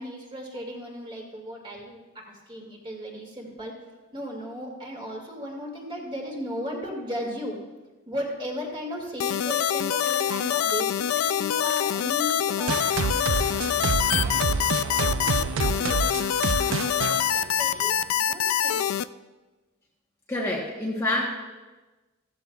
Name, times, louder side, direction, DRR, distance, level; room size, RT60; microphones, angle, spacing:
voice 1, 0.0-3.8 4.1-7.6 8.1-14.5 15.0-16.2 16.8-18.9, equal, 25° right, -1 dB, 2.2 m, -36 dB
sound 1, 9.2-19.0, left 10 dB, 70° left, 0.3 m, -25 dB
sound 2, 12.7-18.1, right 5 dB, 60° right, 0.5 m, -28 dB
voice 2, 20.3-21.3, left 1 dB, 10° left, -4 dB, 1.1 m, -27 dB
14.5 x 14.0 x 2.4 m, 1.2 s
head